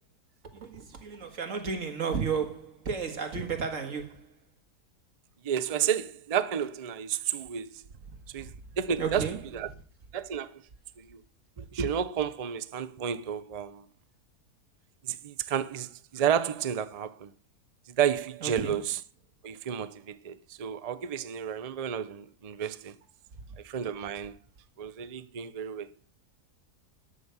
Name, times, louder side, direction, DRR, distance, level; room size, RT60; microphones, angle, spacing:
voice 1, 0.4-4.4 8.1-8.5 9.0-9.4 18.4-18.8, right 6 dB, 55° right, 2.0 m, -33 dB
voice 2, 5.4-7.8 8.3-8.5 8.8-9.3 9.5-9.7 10.1-10.6 11.0-11.2 11.6-13.8 15.0-17.3 17.9-19.0 19.4-22.9 23.6-24.3 24.8-25.9, right 8 dB, 80° right, 0.3 m, -31 dB
12.5 x 6.4 x 8.1 m
omnidirectional pair, 1.7 m